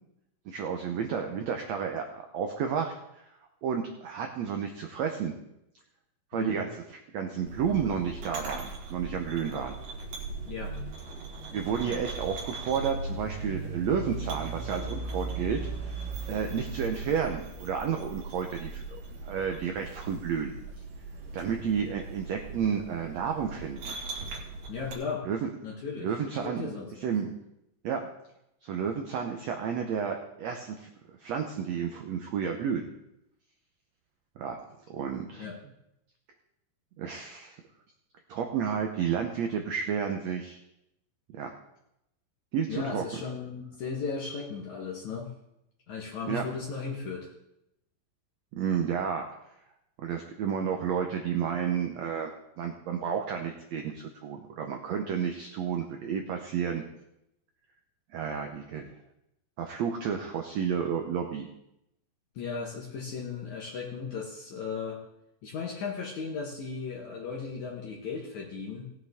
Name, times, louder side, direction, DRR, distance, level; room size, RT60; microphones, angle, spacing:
voice 1, 0.5-2.9 3.6-5.3 6.3-9.7 11.5-15.6 16.3-19.0 19.3-20.5 21.3-23.9 25.3-25.5 26.0-26.7 27.0-27.3 27.8-28.0 28.6-30.9 31.2-32.9 34.4-34.6 34.9-35.5 37.0-37.6 38.3-40.6 41.3-41.5 42.5-43.0 46.3-46.4 48.6-49.3 50.0-52.3 52.6-56.8 58.1-58.9 59.6-61.5, right 7 dB, 85° right, 4 dB, 1.5 m, -31 dB
voice 2, 6.3-6.6 10.5-10.7 24.7-25.3 25.6-26.2 26.4-27.1 35.4-35.6 42.7-45.3 45.9-47.3 62.4-65.0 65.4-68.9, left 5 dB, 60° left, -3 dB, 2.3 m, -36 dB
sound 1, 7.4-24.9, right 3 dB, 70° right, 3.6 m, -38 dB
18.5 x 7.9 x 3.6 m, 0.83 s
omnidirectional pair, 4.2 m